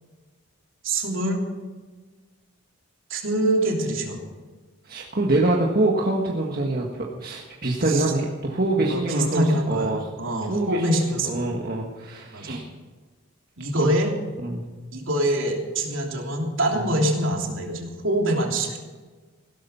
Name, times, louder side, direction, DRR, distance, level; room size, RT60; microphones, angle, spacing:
voice 1, 0.8-1.4 3.1-4.2 7.9-8.0 8.9-11.6 12.3-12.6 13.6-14.1 14.9-18.8, right 1 dB, 65° right, 1 dB, 3.3 m, -25 dB
voice 2, 4.8-10.0 10.5-12.7 13.7-13.9 14.4-14.6 16.7-16.9, right 2 dB, 45° right, -1 dB, 1.6 m, -25 dB
16.5 x 12.5 x 5.7 m, 1.3 s
head